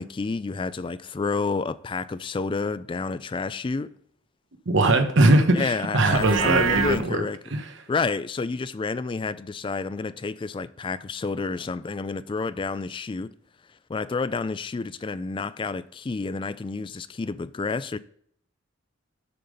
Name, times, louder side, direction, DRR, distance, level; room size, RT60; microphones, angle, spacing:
voice 1, 0.0-3.9 5.5-7.4 7.9-13.3 13.9-18.0, left 4 dB, 25° left, 0.3 m, -29 dB
voice 2, 4.7-7.2 7.5-7.6, right 2 dB, 65° right, 1.0 m, -20 dB
Livestock farm animals working animals, 6.1-7.0, right 6 dB, 80° right, 0.6 m, -26 dB
6.8 x 5.6 x 5.2 m
head